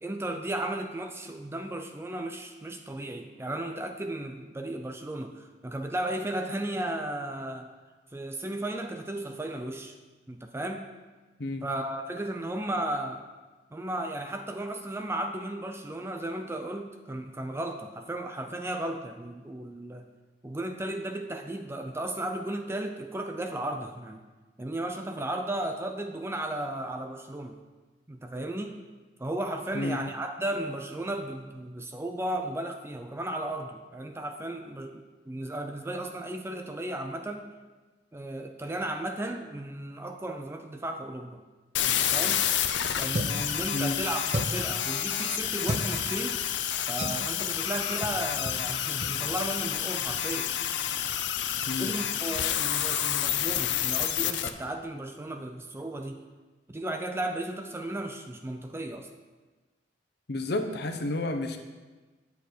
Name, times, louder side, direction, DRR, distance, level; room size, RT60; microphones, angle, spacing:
voice 1, 0.0-7.7 8.1-10.0 10.3-10.9 11.6-13.2 13.7-20.1 20.4-24.2 24.6-27.6 28.1-28.8 29.2-37.5 38.1-41.4 41.8-42.5 43.0-46.4 46.9-50.5 51.8-56.2 56.7-59.1, right 1 dB, 15° right, 5 dB, 0.5 m, -35 dB
sound 1, 41.7-54.5, left 10 dB, 85° left, 0.6 m, -29 dB
sound 2, 43.1-43.5 44.3-44.7 45.6-45.9 47.0-47.2 48.0-48.2 48.4-48.6 49.0-49.1, right 1 dB, 40° right, 0.9 m, -31 dB
voice 2, 60.3-61.6, left 2 dB, 65° left, 6 dB, 0.9 m, -30 dB
10.5 x 7.1 x 4.5 m, 1.3 s
head